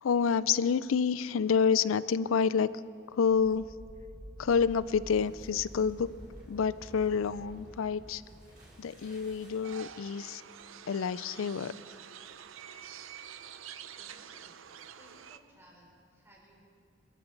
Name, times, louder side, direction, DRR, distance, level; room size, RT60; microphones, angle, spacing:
voice 1, 0.0-2.7 3.1-3.7 4.4-6.1 6.5-8.2 8.8-10.4 10.9-11.7, left 6 dB, 80° left, 17 dB, 0.4 m, -28 dB
sound 1, 3.1-10.0, equal, 45° right, 4.3 m, -50 dB
sound 2, 9.6-15.4, right 8 dB, 75° right, 0.6 m, -47 dB
voice 2, 14.0-14.6 15.0-16.7, equal, 10° right, -3 dB, 3.7 m, -60 dB
26.5 x 14.0 x 4.0 m, 2.6 s
head